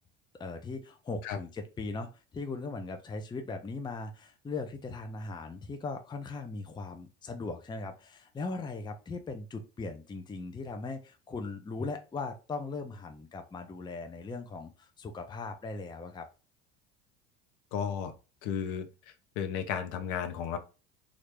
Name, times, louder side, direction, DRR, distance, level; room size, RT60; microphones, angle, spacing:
voice 1, 0.4-16.3, left 3 dB, 15° left, 6 dB, 0.5 m, -39 dB
voice 2, 17.7-18.1 18.4-18.9 19.4-20.6, left 8 dB, 65° left, 8 dB, 0.8 m, -33 dB
3.1 x 2.5 x 3.3 m, 0.32 s
hypercardioid pair, 80°, 33 cm